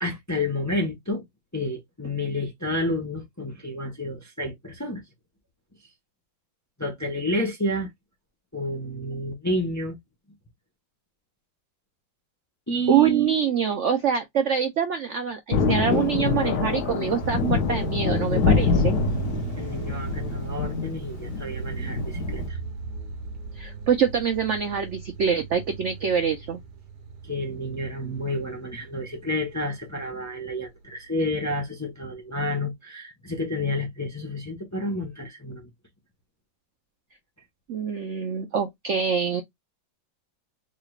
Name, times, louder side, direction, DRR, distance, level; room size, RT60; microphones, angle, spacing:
voice 1, 0.0-1.2 1.5-5.0 6.8-7.9 8.5-10.0 12.7-13.5 19.6-22.6 27.2-35.7, left 1 dB, 20° left, 0.4 m, -30 dB
voice 2, 12.9-19.0 23.6-26.6 37.7-39.4, right 7 dB, 85° right, 0.6 m, -25 dB
Thunder, 15.5-22.5, left 5 dB, 65° left, 1.2 m, -25 dB
sound 1, 17.2-30.3, right 5 dB, 65° right, 1.5 m, -36 dB
4.0 x 3.2 x 2.3 m
omnidirectional pair, 2.0 m